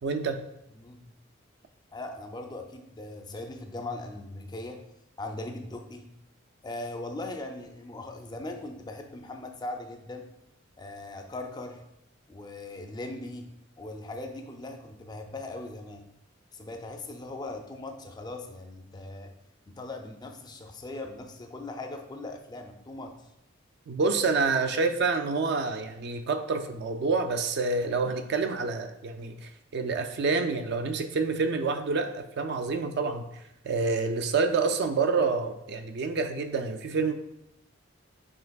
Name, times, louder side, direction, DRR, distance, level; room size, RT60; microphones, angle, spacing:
voice 1, 0.0-0.5 23.9-37.1, right 4 dB, 55° right, 7 dB, 0.3 m, -28 dB
voice 2, 1.9-4.9 5.2-6.2 6.6-10.3 10.8-11.9 12.3-16.1 16.5-19.3 19.7-23.3, left 2 dB, 20° left, 4 dB, 0.3 m, -39 dB
5.5 x 3.2 x 2.3 m, 0.81 s
head